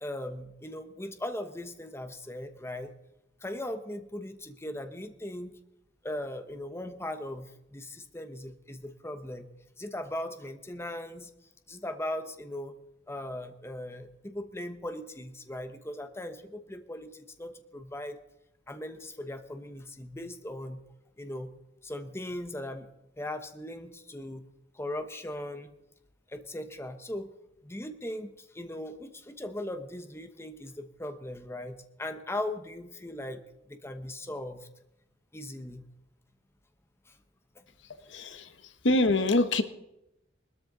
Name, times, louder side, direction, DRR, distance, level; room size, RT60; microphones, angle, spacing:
voice 1, 0.0-2.9 3.4-5.5 6.0-9.5 9.8-11.3 11.7-12.7 13.1-18.2 18.7-20.8 21.2-21.5 21.8-22.9 23.2-24.4 24.7-25.7 26.3-27.3 27.6-33.4 33.7-34.7 35.3-35.8 37.1-37.2 37.5-37.6, left 1 dB, 15° left, 8 dB, 1.0 m, -38 dB
voice 2, 38.0-39.6, left 2 dB, 75° left, 10 dB, 1.2 m, -26 dB
20.5 x 13.0 x 4.0 m, 0.88 s
head